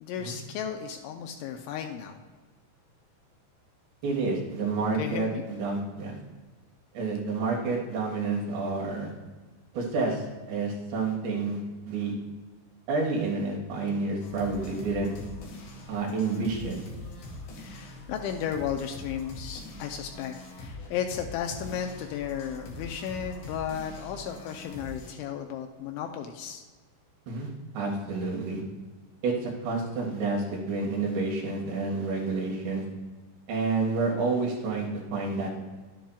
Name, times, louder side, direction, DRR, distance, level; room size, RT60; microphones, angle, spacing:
voice 1, 0.0-2.2 5.0-5.4 17.6-26.6, left 8 dB, 80° left, 4 dB, 2.8 m, -34 dB
voice 2, 4.0-6.2 7.0-9.1 9.7-12.1 12.9-15.1 15.9-16.9 27.3-27.5 27.7-28.6 29.2-32.8 33.5-35.5, right 3 dB, 65° right, -2 dB, 3.7 m, -29 dB
sound 1, 14.2-25.1, left 2 dB, 65° left, 3.6 m, -43 dB
11.5 x 10.0 x 2.3 m, 1.3 s
omnidirectional pair, 5.6 m